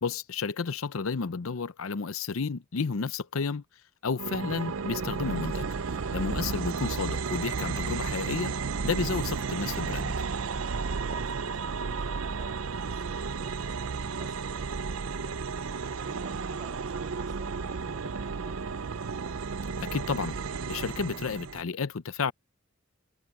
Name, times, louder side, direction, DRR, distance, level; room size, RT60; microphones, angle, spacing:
voice 1, 0.0-3.6 4.0-5.7 6.1-8.5 8.8-10.1 19.9-20.3 20.7-22.3, left 5 dB, 85° left, 0.7 m, -31 dB
sound 1, 4.2-21.6, right 5 dB, 75° right, 0.6 m, -33 dB
voice 2, 5.9-6.4 10.7-18.6, right 1 dB, 20° right, 7.8 m, -52 dB
head